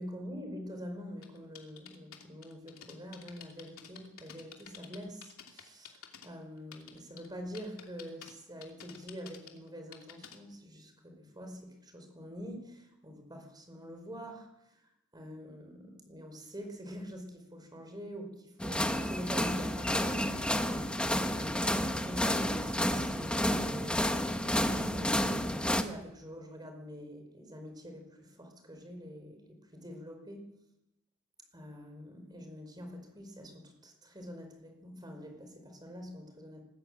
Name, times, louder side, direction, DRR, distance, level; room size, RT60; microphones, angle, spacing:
voice 1, 0.0-20.5 20.8-24.3 24.7-30.5 31.5-36.6, equal, 20° right, 4 dB, 5.0 m, -46 dB
sound 1, 1.2-6.3 6.6-7.3 7.5-8.3 8.6-10.4, left 8 dB, 70° left, 2.9 m, -50 dB
sound 2, 18.6-25.8, left 1 dB, 5° left, 1.2 m, -30 dB
21.0 x 13.5 x 9.0 m, 0.87 s
head